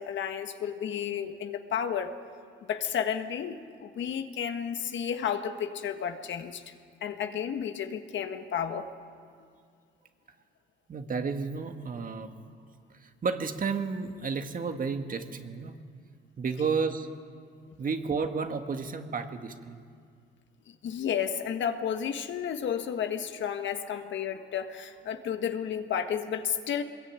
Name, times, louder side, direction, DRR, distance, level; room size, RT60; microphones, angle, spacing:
voice 1, 0.0-2.1 2.6-6.6 7.0-8.9 20.7-26.8, left 8 dB, 70° left, 7 dB, 1.6 m, -32 dB
voice 2, 10.9-12.3 13.0-15.7 16.4-17.1 17.8-19.8, right 5 dB, 45° right, 6 dB, 1.8 m, -32 dB
23.0 x 21.0 x 9.0 m, 2.2 s
cardioid pair, 90°, 20 cm